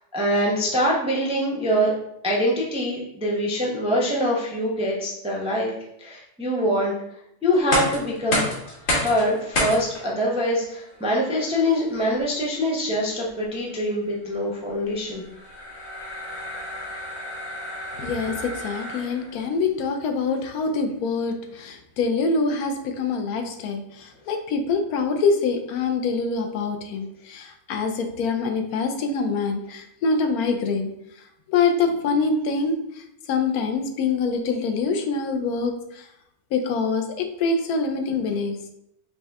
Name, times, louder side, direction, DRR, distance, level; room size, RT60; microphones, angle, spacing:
voice 1, 0.1-1.9 2.2-5.7 6.0-6.9 7.4-8.6 8.9-15.2, equal, 10° right, -3 dB, 0.3 m, -24 dB
sound 1, 7.5-19.4, left 1 dB, 50° left, 1.3 m, -31 dB
voice 2, 18.0-30.9 31.5-32.8 33.3-36.1 36.5-38.6, left 4 dB, 90° left, 6 dB, 1.1 m, -25 dB
5.4 x 2.2 x 3.4 m, 0.79 s
omnidirectional pair, 1.5 m